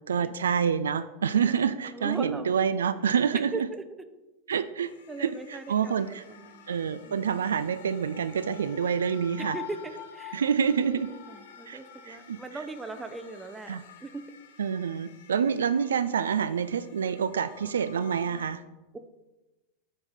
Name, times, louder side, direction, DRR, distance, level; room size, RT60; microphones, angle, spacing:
voice 1, 0.1-3.5 4.5-4.9 5.2-6.2 6.7-9.6 10.3-11.1 11.7-11.8 12.1-12.4 13.7-13.8 14.6-18.6, right 7 dB, 70° right, 13 dB, 0.3 m, -27 dB
voice 2, 1.5-2.5 3.3-3.8 5.1-6.7 7.1-7.2 9.4-10.4 10.8-14.2 18.9-19.0, right 3 dB, 15° right, 9 dB, 0.7 m, -39 dB
sound 1, 4.8-18.5, left 9 dB, 60° left, 0.9 m, -48 dB
8.0 x 4.8 x 5.5 m, 1.1 s
figure-of-eight pair, 90°, 0 cm